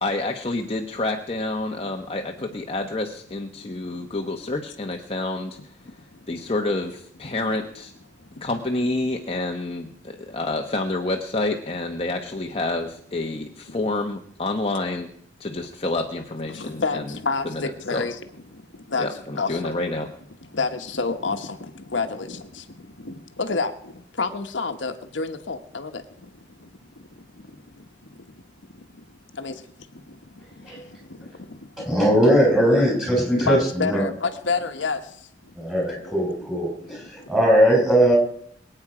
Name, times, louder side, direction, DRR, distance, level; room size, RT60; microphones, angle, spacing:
voice 1, 0.0-5.8 6.3-7.9 8.4-15.1 15.4-17.0 17.4-17.6 17.9-18.0 19.0-20.1, left 2 dB, 30° left, 3 dB, 1.0 m, -28 dB
voice 2, 3.6-3.9 5.6-6.3 7.2-7.3 8.2-8.4 13.4-13.8 16.5-19.8 20.4-28.4 28.7-29.7 29.9-33.0 33.3-37.3, left 4 dB, 80° left, 6 dB, 1.2 m, -31 dB
voice 3, 31.8-34.0 35.6-38.2, equal, ahead, -1 dB, 5.3 m, -19 dB
23.0 x 8.9 x 4.9 m, 0.66 s
head